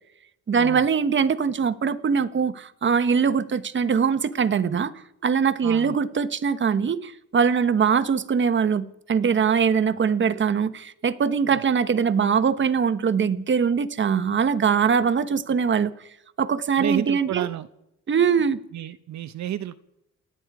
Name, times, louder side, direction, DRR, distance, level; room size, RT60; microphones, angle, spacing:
voice 1, 0.5-4.9 5.2-15.9 16.4-17.5 18.1-18.6, right 6 dB, 40° right, 13 dB, 1.2 m, -22 dB
voice 2, 5.6-5.9 11.5-11.6 16.8-17.7 18.7-19.7, right 11 dB, 65° right, 11 dB, 0.9 m, -31 dB
29.5 x 10.0 x 4.9 m, 0.85 s
cardioid pair, 90°, 30 cm